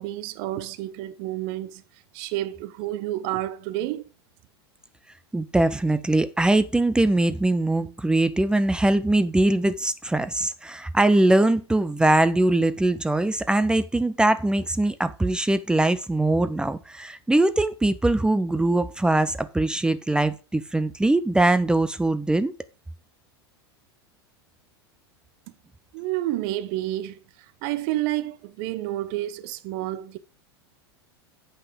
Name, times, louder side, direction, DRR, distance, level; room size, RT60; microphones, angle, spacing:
voice 1, 0.0-1.8 2.1-4.1 25.9-30.2, right 14 dB, 50° right, 0.8 m, -30 dB
voice 2, 5.3-22.5, right 2 dB, 5° right, 0.6 m, -22 dB
7.8 x 5.5 x 5.0 m
figure-of-eight pair, 90°, 13 cm